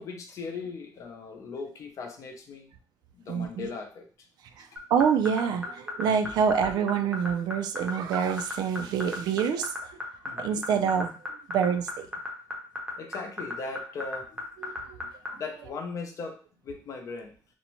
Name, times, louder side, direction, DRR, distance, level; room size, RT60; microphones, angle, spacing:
voice 1, 0.0-2.7 3.1-4.3 4.6-4.7 10.2-10.6 13.0-14.4 15.3-16.4 16.6-17.3, left 4 dB, 50° left, 4 dB, 0.5 m, -38 dB
voice 2, 3.3-3.7 4.6-9.7 10.4-11.1 11.5-12.1 14.6-15.0, right 7 dB, 85° right, 7 dB, 0.3 m, -26 dB
sound 1, 4.8-15.3, left 2 dB, 15° right, 0.6 m, -33 dB
2.6 x 2.1 x 2.9 m, 0.39 s
cardioid pair, 160°, 7 cm